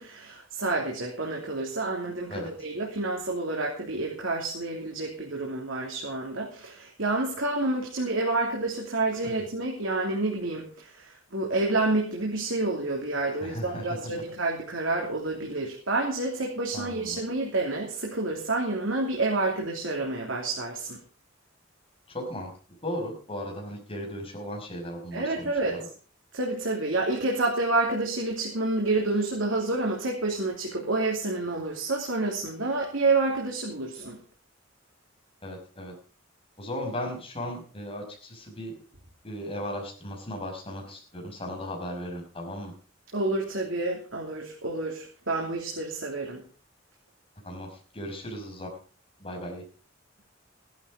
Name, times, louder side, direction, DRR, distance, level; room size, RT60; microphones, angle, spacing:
voice 1, 0.0-21.0 25.1-25.8 26.3-34.2 43.1-46.4, right 2 dB, 75° right, -1 dB, 3.1 m, -29 dB
voice 2, 13.4-14.0 16.7-17.2 22.1-22.5 22.8-25.8 35.4-35.9 36.6-38.7 39.2-42.7 47.4-48.7 49.2-49.6, equal, 30° left, 1 dB, 5.7 m, -36 dB
15.5 x 11.5 x 5.1 m, 0.41 s
head